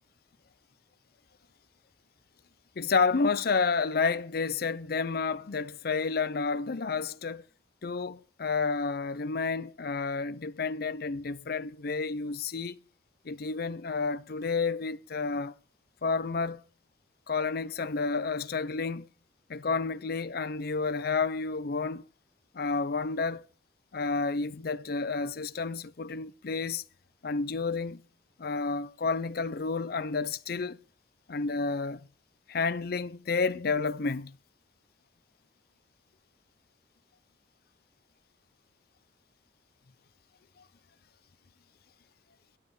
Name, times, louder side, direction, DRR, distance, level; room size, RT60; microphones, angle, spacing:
voice 1, 2.8-7.4 7.8-12.8 13.2-15.5 16.0-16.6 17.3-19.1 19.5-22.0 22.5-23.4 23.9-26.8 27.2-28.0 28.4-30.8 31.3-32.1 32.5-34.4, left 4 dB, 55° left, 0.6 m, -30 dB
22.0 x 7.9 x 4.8 m
head